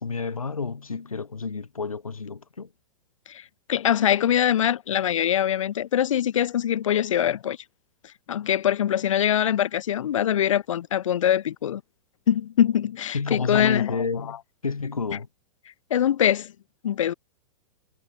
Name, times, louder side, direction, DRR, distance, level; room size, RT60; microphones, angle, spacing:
voice 1, 0.0-2.7 13.1-15.3, left 4 dB, 85° left, 1.7 m, -30 dB
voice 2, 3.7-7.6 8.3-11.8 12.3-14.0 15.9-16.5 16.8-17.1, left 10 dB, 65° left, 0.8 m, -23 dB
figure-of-eight pair, 100°, 18 cm